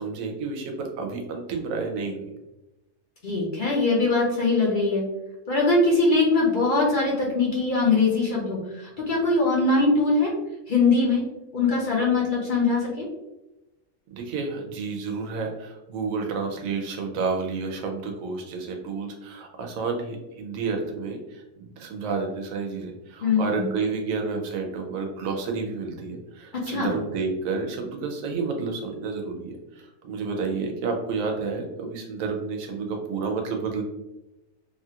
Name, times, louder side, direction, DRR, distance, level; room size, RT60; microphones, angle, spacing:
voice 1, 0.0-2.2 14.1-33.8, right 4 dB, 90° right, 2 dB, 1.0 m, -30 dB
voice 2, 3.2-5.0 5.5-10.3 10.7-11.2 11.5-13.1 23.2-23.7 26.5-26.9, left 3 dB, 50° left, -4 dB, 0.7 m, -22 dB
2.9 x 2.4 x 2.8 m, 0.98 s
omnidirectional pair, 1.4 m